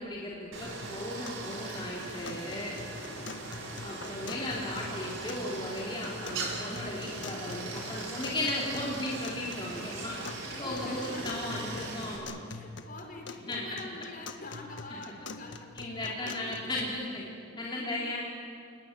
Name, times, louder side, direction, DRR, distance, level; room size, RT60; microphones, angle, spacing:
voice 1, 0.0-2.8 3.8-10.2 10.6-12.3 13.5-13.6 15.8-17.2 17.6-18.2, left 1 dB, 25° left, -4 dB, 3.6 m, -36 dB
Stream, 0.5-12.2, right 2 dB, 85° right, 5.5 m, -40 dB
sound 1, 0.8-16.8, left 3 dB, 65° left, 1.5 m, -46 dB
voice 2, 2.7-3.3 3.7-4.7 10.1-11.7 12.5-16.8 17.2-17.9, left 2 dB, 45° left, 2 dB, 5.1 m, -46 dB
29.0 x 20.5 x 9.1 m, 2.5 s
head